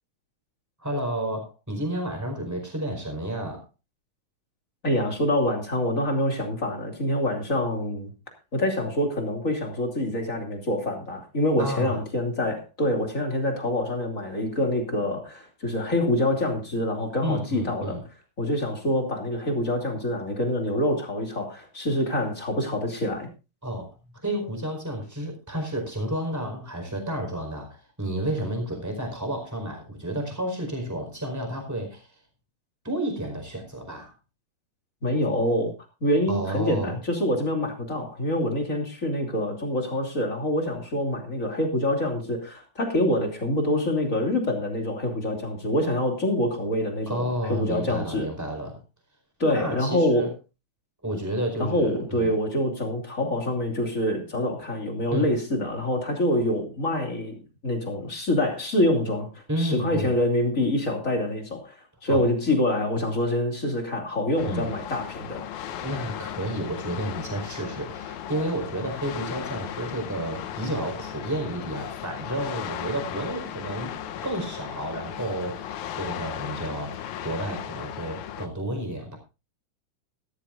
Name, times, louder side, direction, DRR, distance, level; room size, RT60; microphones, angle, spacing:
voice 1, 0.8-3.6 11.6-12.0 17.2-18.0 23.6-23.9 24.2-32.1 32.8-34.1 36.3-36.9 47.1-48.8 49.4-50.3 51.0-52.3 55.1-55.3 59.5-60.1 62.1-62.3 64.4-64.7 65.8-73.9 74.2-79.2, right 1 dB, 5° right, 4 dB, 4.4 m, -31 dB
voice 2, 4.8-8.1 8.5-18.0 18.4-23.3 35.0-35.7 36.0-48.3 49.4-50.3 51.6-61.8 62.0-65.4, left 1 dB, 25° left, 2 dB, 2.9 m, -26 dB
sound 1, 64.4-78.5, left 10 dB, 70° left, 2.2 m, -36 dB
16.5 x 13.0 x 2.6 m, 0.29 s
omnidirectional pair, 3.7 m